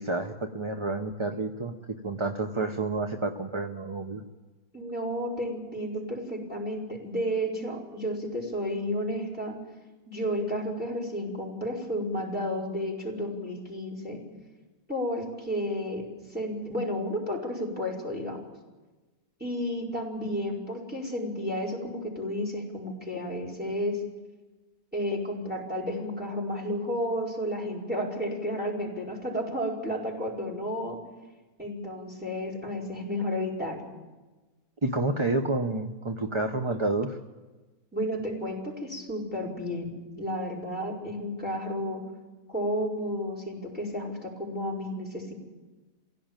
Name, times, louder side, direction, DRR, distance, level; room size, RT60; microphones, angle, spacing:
voice 1, 0.0-4.2 34.8-37.2, right 2 dB, 25° right, 5 dB, 0.7 m, -29 dB
voice 2, 4.7-9.5 10.1-14.2 14.9-18.4 19.4-24.0 24.9-31.0 31.6-33.8 37.9-39.9 40.2-42.0 42.5-45.3, equal, 5° right, -1 dB, 5.4 m, -32 dB
23.5 x 16.5 x 9.0 m, 1.2 s
omnidirectional pair, 1.7 m